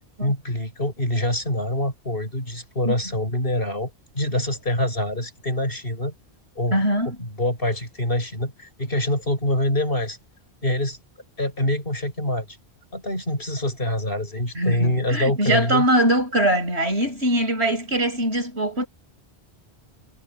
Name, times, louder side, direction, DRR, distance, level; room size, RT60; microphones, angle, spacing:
voice 1, 0.2-6.1 6.6-10.2 10.6-11.0 11.4-12.6 12.9-15.9, left 1 dB, 55° left, 7.6 m, -25 dB
voice 2, 6.7-7.2 14.5-18.9, right 1 dB, 70° right, 7.5 m, -22 dB
omnidirectional pair, 1.1 m